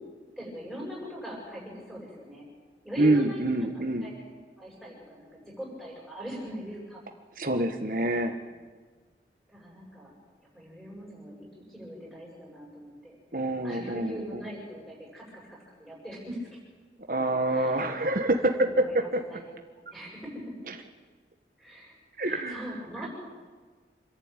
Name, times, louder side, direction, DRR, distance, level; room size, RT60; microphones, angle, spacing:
voice 1, 0.4-2.5 2.8-3.4 4.0-4.1 4.6-7.0 9.5-10.1 10.5-13.2 13.6-16.5 17.4-17.9 18.2-19.4 19.7-20.4 21.6-23.1, equal, ahead, -5 dB, 7.8 m, -41 dB
voice 2, 3.0-4.1 7.4-8.3 13.3-14.4 17.1-19.2 22.2-22.6, right 1 dB, 50° right, 4 dB, 1.4 m, -26 dB
27.0 x 11.0 x 9.0 m, 1.4 s
head